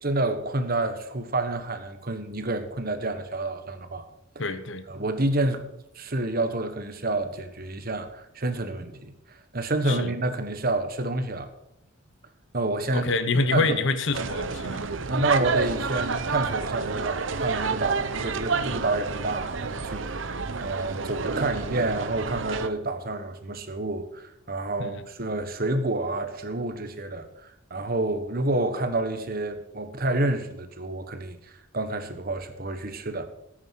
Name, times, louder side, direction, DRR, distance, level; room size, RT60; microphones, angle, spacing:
voice 1, 0.0-4.0 4.3-4.5 4.9-5.6 5.9-9.1 9.5-11.5 12.5-13.8 15.1-20.3 20.6-27.3 27.7-31.4 31.7-33.3, right 2 dB, 45° right, 1.3 m, -29 dB
voice 2, 4.4-4.8 9.9-10.1 12.9-14.8 24.8-24.9, left 3 dB, 60° left, 1.1 m, -26 dB
sound 1, 14.1-22.7, right 4 dB, 65° right, 0.8 m, -29 dB
14.0 x 8.9 x 5.8 m
head